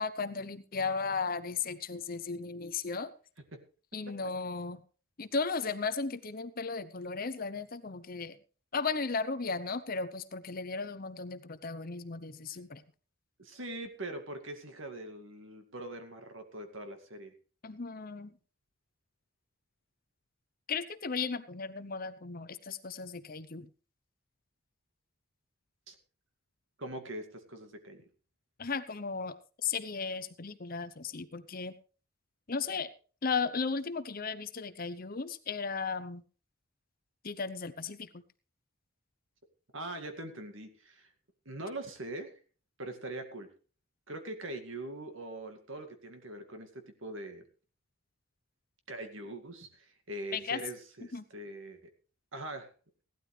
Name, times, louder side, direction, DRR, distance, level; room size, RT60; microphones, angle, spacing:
voice 1, 0.0-3.1 3.9-4.8 5.2-8.4 8.7-12.8 17.6-18.3 20.7-23.7 28.6-29.4 29.6-31.7 32.5-32.9 33.2-36.2 37.2-38.2 50.3-50.6 51.1-51.2, left 4 dB, 40° left, 12 dB, 0.8 m, -35 dB
voice 2, 13.4-17.3 25.9-26.0 26.8-28.1 39.7-41.1 41.5-42.3 42.8-43.5 44.1-47.4 48.9-51.8 52.3-52.7, right 1 dB, 65° right, 6 dB, 2.2 m, -42 dB
17.0 x 12.0 x 3.3 m, 0.37 s
head